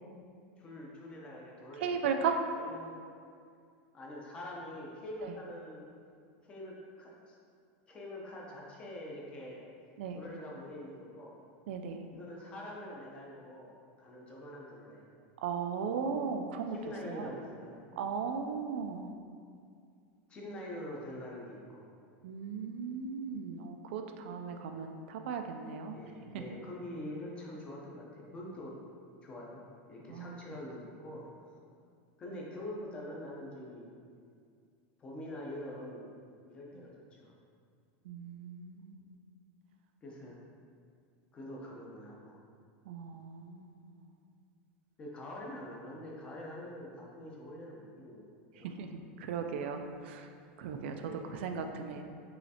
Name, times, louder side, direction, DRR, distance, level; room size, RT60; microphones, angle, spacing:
voice 1, 0.6-2.3 2.6-2.9 3.9-5.9 6.4-7.3 7.9-9.6 10.1-11.4 12.1-13.7 14.0-15.0 16.7-17.8 20.3-21.9 25.9-28.8 29.2-31.3 32.2-33.9 35.0-36.1 36.5-37.3 40.0-40.4 41.3-42.4 45.0-48.3 48.5-48.7 51.0-51.4, left 1 dB, 15° left, -3 dB, 0.6 m, -45 dB
voice 2, 1.8-2.4 5.2-5.3 10.0-10.2 11.7-12.0 15.4-16.8 17.1-17.3 18.0-19.1 22.2-26.5 30.1-30.4 38.0-39.1 42.9-43.8 48.6-50.3 50.6-52.0, right 6 dB, 70° right, 5 dB, 0.3 m, -37 dB
5.6 x 3.1 x 2.8 m, 2.3 s
supercardioid pair, 175°, 6 cm